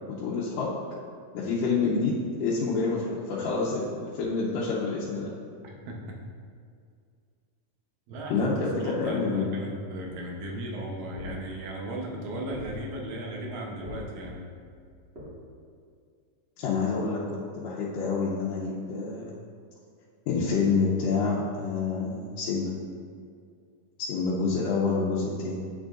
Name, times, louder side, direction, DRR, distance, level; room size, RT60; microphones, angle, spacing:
voice 1, 0.1-0.7 1.3-5.3 8.3-9.5 16.6-19.3 20.3-22.7 24.0-25.6, left 4 dB, 85° left, -6 dB, 2.3 m, -28 dB
voice 2, 5.6-6.0 8.1-8.5 8.8-14.5, right 1 dB, 85° right, 0 dB, 2.6 m, -36 dB
sound 1, 11.2-15.2, left 1 dB, 25° right, 1.3 m, -45 dB
8.9 x 6.3 x 2.5 m, 2.2 s
omnidirectional pair, 3.9 m